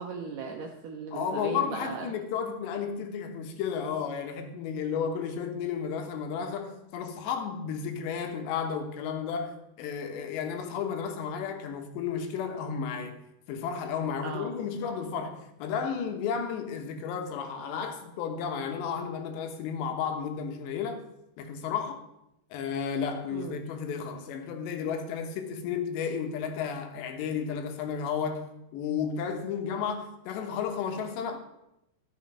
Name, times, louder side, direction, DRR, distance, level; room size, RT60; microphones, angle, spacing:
voice 1, 0.0-2.1 14.2-14.5 23.3-23.5, right 5 dB, 75° right, 1.9 m, -37 dB
voice 2, 1.1-13.2 13.5-21.0 21.4-22.0 22.5-31.4, left 7 dB, 85° left, 3.4 m, -33 dB
13.0 x 7.0 x 5.4 m
omnidirectional pair, 4.9 m